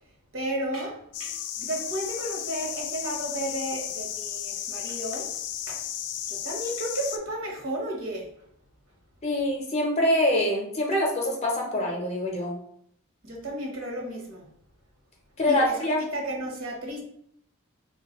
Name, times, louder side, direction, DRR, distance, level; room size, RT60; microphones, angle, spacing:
voice 1, 0.3-5.3 5.7-5.8 6.3-8.3 13.2-14.5 15.4-15.8 16.1-17.0, right 1 dB, 60° right, 0 dB, 0.9 m, -33 dB
sound 1, 1.1-7.2, left 10 dB, 85° left, 0.3 m, -34 dB
voice 2, 9.2-12.6 15.4-16.1, left 1 dB, 30° left, -1 dB, 0.6 m, -25 dB
3.6 x 2.2 x 2.9 m, 0.69 s
head